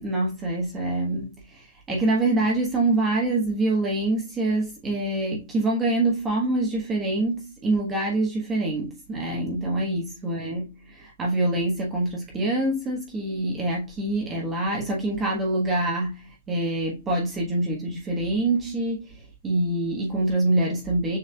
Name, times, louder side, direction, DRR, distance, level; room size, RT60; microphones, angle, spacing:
voice 1, 0.0-19.1 19.4-21.2, right 2 dB, 15° right, 1.2 m, -25 dB
6.6 x 3.1 x 2.3 m
hypercardioid pair, 155°, 0 cm